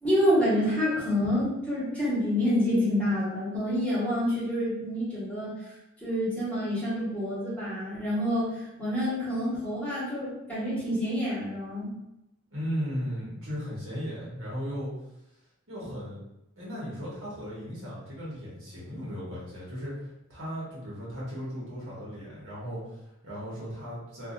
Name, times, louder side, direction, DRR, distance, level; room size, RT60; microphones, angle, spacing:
voice 1, 0.0-5.5 6.0-11.9, equal, 5° left, -10 dB, 1.1 m, -27 dB
voice 2, 12.5-14.9 15.7-16.2 16.6-24.3, equal, 70° right, -7 dB, 1.2 m, -36 dB
2.7 x 2.4 x 2.5 m, 0.88 s
head